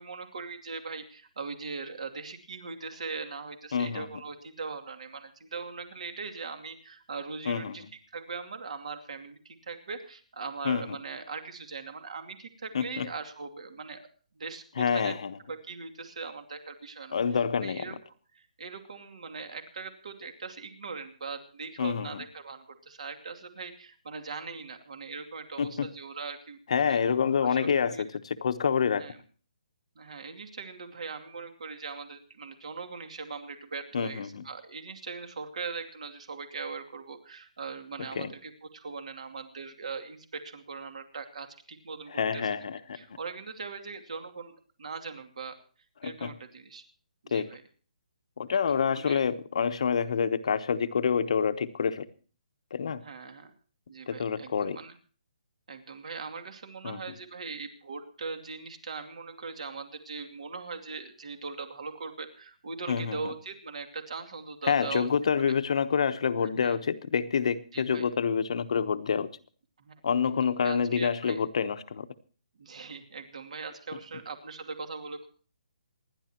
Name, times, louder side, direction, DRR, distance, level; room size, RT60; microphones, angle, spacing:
voice 1, 0.0-7.8 8.1-14.0 14.3-15.1 15.5-18.0 18.3-27.0 27.4-28.0 29.0-29.2 30.0-42.6 42.9-45.6 46.0-46.8 47.2-47.6 48.7-49.2 53.0-53.5 53.9-54.9 55.7-65.1 65.4-65.5 66.4-66.8 67.7-68.0 69.8-69.9 70.4-71.4 72.6-75.3, right 4 dB, 60° right, 7 dB, 2.5 m, -40 dB
voice 2, 3.7-4.1 7.5-7.8 10.6-11.0 12.7-13.1 14.8-15.4 17.1-17.9 21.8-22.2 25.6-25.9 26.7-29.0 33.9-34.4 38.2-38.3 42.1-43.0 46.0-46.3 47.3-47.5 48.4-52.1 52.7-53.0 54.1-54.8 56.8-57.0 62.9-63.3 64.7-69.3 70.0-72.1, left 6 dB, 50° left, 10 dB, 1.0 m, -27 dB
27.5 x 11.0 x 3.0 m, 0.41 s
hypercardioid pair, 170°, 4 cm